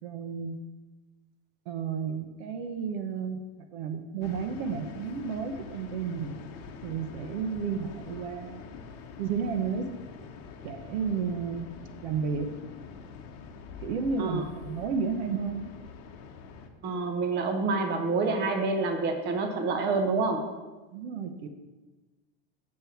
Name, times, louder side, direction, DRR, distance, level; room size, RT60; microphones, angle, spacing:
voice 1, 0.0-0.6 1.7-3.4 3.7-6.3 6.8-8.8 9.2-9.9 10.6-11.7 12.0-12.5 13.8-15.7 20.9-21.5, right 6 dB, 60° right, 7 dB, 0.9 m, -32 dB
sound 1, 4.2-16.7, left 5 dB, 40° left, 1.0 m, -45 dB
voice 2, 16.8-20.5, right 3 dB, 30° right, 6 dB, 1.0 m, -27 dB
7.6 x 4.5 x 7.0 m, 1.2 s
supercardioid pair, 150°, 36 cm